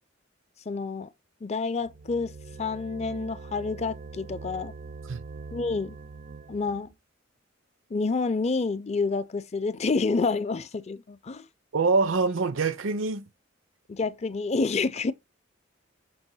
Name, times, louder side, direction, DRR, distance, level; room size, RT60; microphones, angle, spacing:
voice 1, 0.7-1.1 1.4-2.3 2.6-4.7 5.5-6.0 6.5-6.9 7.9-11.5 13.9-15.1, left 4 dB, 35° left, 0.4 m, -28 dB
sound 1, 1.8-6.9, right 4 dB, 40° right, 0.3 m, -43 dB
voice 2, 11.7-13.3, right 4 dB, 80° right, 0.6 m, -25 dB
6.2 x 2.9 x 5.5 m
head